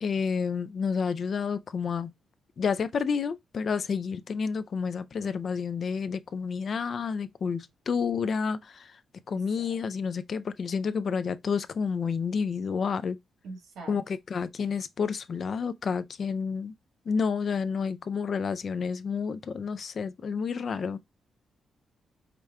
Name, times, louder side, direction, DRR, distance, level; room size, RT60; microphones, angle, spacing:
voice 1, 0.0-2.1 2.6-8.6 9.3-13.2 13.9-16.7 17.1-21.0, left 6 dB, 50° left, 0.4 m, -30 dB
voice 2, 13.4-14.0, right 3 dB, 85° right, 1.5 m, -42 dB
4.8 x 2.2 x 3.5 m
cardioid pair, 105°, 0 cm